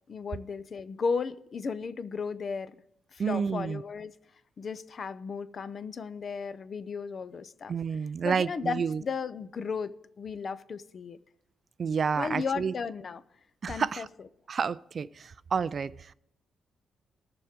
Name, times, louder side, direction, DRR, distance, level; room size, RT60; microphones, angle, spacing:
voice 1, 0.1-2.7 3.1-4.1 4.6-7.7 8.2-11.2 12.2-13.2 13.7-14.1, left 5 dB, 45° left, 0.5 m, -35 dB
voice 2, 3.2-3.8 7.7-9.0 11.8-12.7 13.6-14.1 14.5-16.1, right 6 dB, 45° right, 0.3 m, -30 dB
20.0 x 6.8 x 3.6 m
cardioid pair, 125°, 0 cm